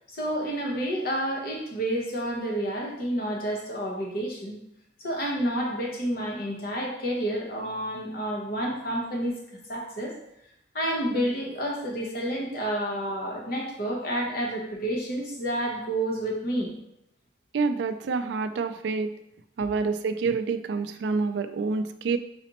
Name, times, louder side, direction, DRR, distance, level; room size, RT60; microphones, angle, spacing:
voice 1, 0.1-4.6 5.0-9.4 9.7-10.1 10.7-16.7, right 1 dB, 55° left, -1 dB, 1.0 m, -29 dB
voice 2, 17.5-19.1 19.6-22.2, right 4 dB, 70° right, 9 dB, 0.3 m, -27 dB
4.1 x 4.0 x 2.9 m, 0.78 s
head